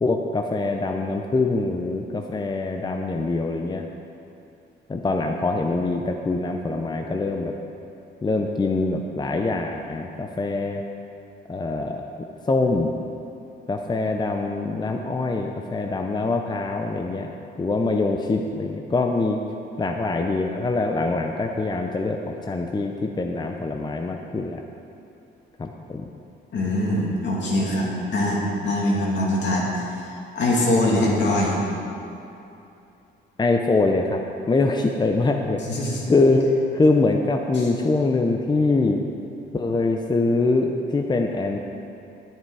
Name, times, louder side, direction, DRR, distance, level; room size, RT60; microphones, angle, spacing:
voice 1, 0.0-3.9 4.9-7.6 8.2-10.8 11.5-12.0 12.5-12.9 13.7-19.4 19.8-24.6 25.6-26.1 33.4-34.2 34.5-35.8 36.1-36.5 36.7-39.0 39.5-41.6, left 3 dB, 20° left, 3 dB, 0.7 m, -24 dB
voice 2, 26.5-31.6 35.7-36.0 37.6-37.7, left 1 dB, 65° left, -3 dB, 2.6 m, -23 dB
10.5 x 9.2 x 4.8 m, 2.7 s
cardioid pair, 90°, 20 cm